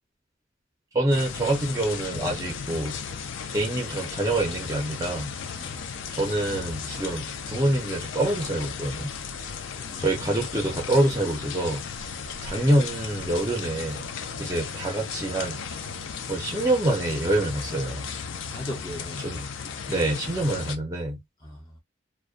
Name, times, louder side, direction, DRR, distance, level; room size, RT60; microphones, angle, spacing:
voice 1, 0.9-3.0 3.5-5.3 6.1-9.1 10.0-11.8 12.4-14.1 14.4-15.8 16.3-18.1 19.2-19.5 19.9-21.2, right 1 dB, 15° right, 0.5 m, -26 dB
sound 1, 1.1-20.8, left 6 dB, 70° left, 0.4 m, -35 dB
voice 2, 5.6-5.9 9.7-10.2 14.3-14.5 18.5-19.2 19.6-19.7 21.4-21.8, equal, 20° left, 0.7 m, -40 dB
2.4 x 2.2 x 2.4 m
head